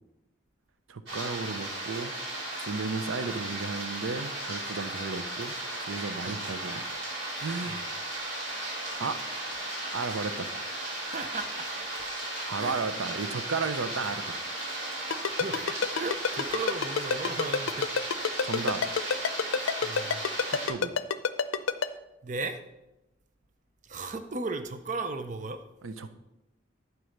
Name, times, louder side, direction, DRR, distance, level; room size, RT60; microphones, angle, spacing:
voice 1, 0.9-2.1 2.6-6.8 7.3-7.8 9.0-9.2 9.9-10.5 12.4-14.4 18.4-18.8 20.5-20.9 25.8-26.1, right 4 dB, 85° right, 11 dB, 0.6 m, -34 dB
sound 1, 1.1-20.7, right 1 dB, 55° right, 3.6 m, -35 dB
voice 2, 11.1-12.0 12.6-12.9 15.3-17.9 19.8-20.2 22.2-22.6 23.8-25.7, right 3 dB, 40° right, 8 dB, 0.6 m, -36 dB
Ringtone, 15.1-21.9, left 6 dB, 90° left, 0.5 m, -27 dB
11.0 x 4.7 x 6.5 m, 0.94 s
head